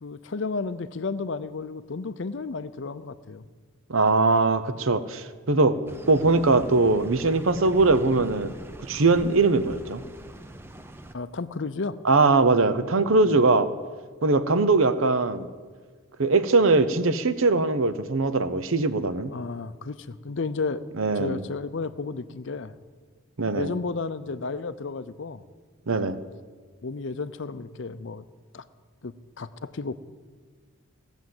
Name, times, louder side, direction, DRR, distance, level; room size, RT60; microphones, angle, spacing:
voice 1, 0.0-3.4 11.1-12.0 13.3-13.4 19.3-20.8 21.2-22.7 23.5-25.4 25.9-26.1 26.8-28.2 28.5-28.6 29.0-30.0, left 4 dB, 55° left, 14 dB, 0.5 m, -32 dB
voice 2, 3.9-5.8 6.1-8.5 8.9-10.0 12.0-13.7 14.2-15.5 16.2-19.3 21.0-21.4 23.4-23.7 25.9-26.2, right 3 dB, 65° right, 12 dB, 0.8 m, -21 dB
sound 1, 5.9-11.1, right 1 dB, 10° right, 0.6 m, -41 dB
17.0 x 7.1 x 7.8 m, 1.5 s
head